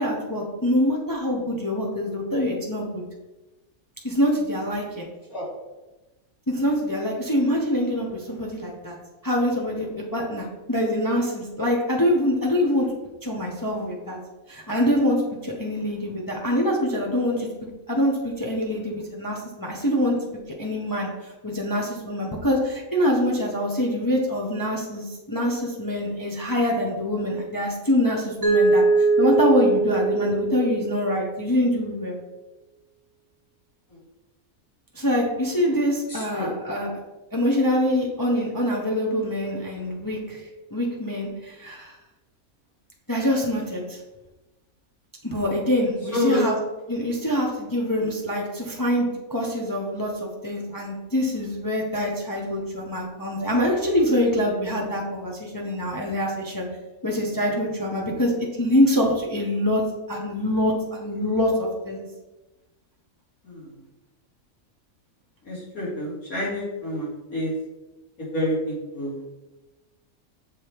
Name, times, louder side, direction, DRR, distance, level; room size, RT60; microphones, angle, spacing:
voice 1, 0.0-3.0 4.0-5.1 6.5-9.0 9.2-12.9 13.2-14.2 14.5-17.5 17.9-20.2 20.6-32.2 34.9-36.9 37.3-40.4 40.7-42.0 43.1-44.0 45.2-46.6 46.9-56.7 57.0-58.3 58.6-59.8 60.1-62.0, left 1 dB, 20° left, -1 dB, 0.6 m, -25 dB
Mallet percussion, 28.4-31.3, right 3 dB, 35° right, 0.6 m, -21 dB
voice 2, 36.1-36.5 46.1-46.4 48.0-48.1 63.4-63.7 65.4-67.5 68.2-69.2, left 1 dB, 75° left, -7 dB, 2.8 m, -28 dB
6.7 x 3.4 x 4.4 m, 1.1 s
omnidirectional pair, 1.5 m